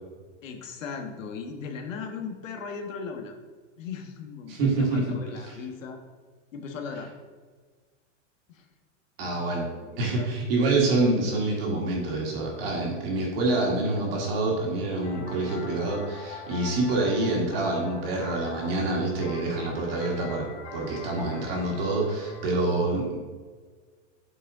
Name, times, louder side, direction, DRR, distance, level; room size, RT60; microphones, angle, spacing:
voice 1, 0.4-3.3 3.8-6.0 6.5-7.1 8.5-8.7 9.4-10.3, left 5 dB, 90° left, 4 dB, 1.4 m, -38 dB
voice 2, 4.5-5.0 5.5-5.6 9.2-9.7 10.0-23.2, right 2 dB, 50° right, -2 dB, 1.8 m, -26 dB
sound 1, 15.0-22.5, left 4 dB, 65° left, 1.8 m, -43 dB
8.3 x 5.1 x 3.7 m, 1.5 s
supercardioid pair, 165°, 38 cm